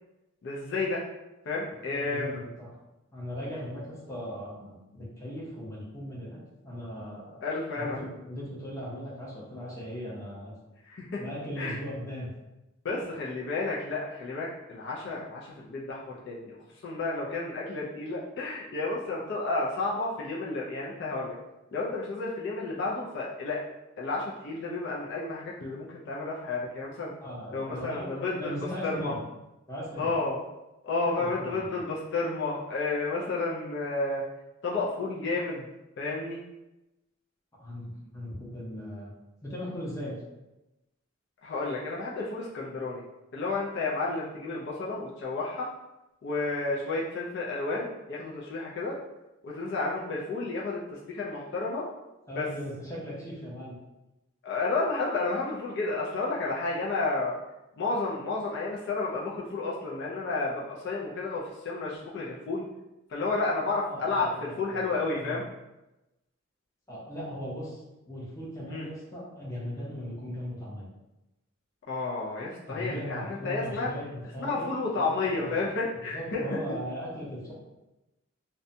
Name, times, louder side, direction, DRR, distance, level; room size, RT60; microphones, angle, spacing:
voice 1, 0.4-1.0 1.5-2.3 7.4-8.0 10.8-11.2 11.6-11.7 12.8-16.6 16.8-21.4 21.7-23.6 24.0-27.1 27.5-29.1 30.0-30.4 30.8-34.2 34.6-35.7 36.0-36.4 41.4-43.0 43.3-45.7 46.2-49.0 49.4-51.9 52.3-52.5 54.4-57.4 57.8-62.6 63.1-65.4 68.7-68.9 71.9-73.9 74.4-76.6, left 3 dB, 55° left, -5 dB, 0.4 m, -31 dB
voice 2, 1.7-2.7 3.1-7.4 7.8-10.5 11.2-12.3 12.9-13.0 27.2-29.2 29.7-30.1 31.2-31.8 37.6-39.1 39.4-40.2 52.3-53.7 63.8-64.9 65.2-65.4 66.9-70.9 72.7-74.7 74.9-75.5 76.1-77.5, equal, 15° left, -6 dB, 0.7 m, -38 dB
2.6 x 2.1 x 2.6 m, 0.98 s
head